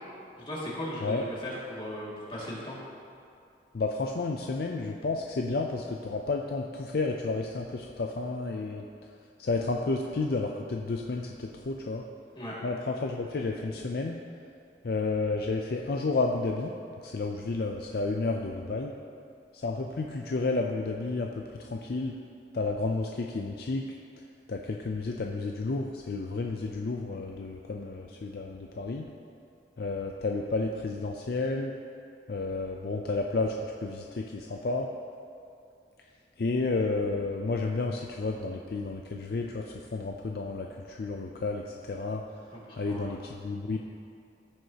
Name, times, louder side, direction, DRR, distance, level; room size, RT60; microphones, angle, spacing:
voice 1, 0.4-2.7 12.4-12.5 42.5-43.1, equal, 25° left, -7 dB, 2.1 m, -37 dB
voice 2, 3.7-8.8 9.4-12.0 12.6-14.2 14.8-16.7 17.0-18.9 19.5-21.3 21.6-22.1 22.5-23.9 24.5-29.0 29.8-31.7 32.3-33.5 33.8-34.9 36.4-39.6 39.9-42.2 42.8-43.8, left 3 dB, 55° left, 1 dB, 0.4 m, -31 dB
15.5 x 6.4 x 2.9 m, 2.5 s
head